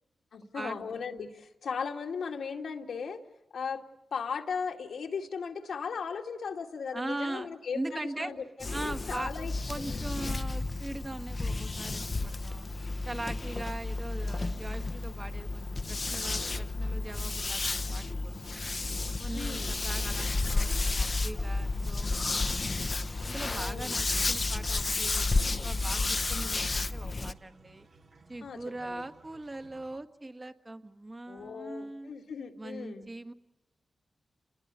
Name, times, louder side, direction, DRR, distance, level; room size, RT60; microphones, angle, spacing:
voice 1, 0.3-3.2 3.5-3.8 4.1-8.4 8.7-10.0 19.3-19.7 23.5-24.0 28.4-29.0 31.3-33.1, left 5 dB, 85° left, 3 dB, 2.3 m, -37 dB
voice 2, 6.9-7.5 7.7-8.3 8.7-12.7 13.1-18.7 19.2-22.7 23.2-27.9 28.3-32.1 32.6-33.3, right 2 dB, 30° right, 7 dB, 1.7 m, -41 dB
sound 1, 8.6-27.3, left 3 dB, 40° left, 0.9 m, -32 dB
sound 2, 19.6-30.0, right 3 dB, 65° right, 2.5 m, -57 dB
29.5 x 21.5 x 8.3 m, 0.94 s
cardioid pair, 60°, 0 cm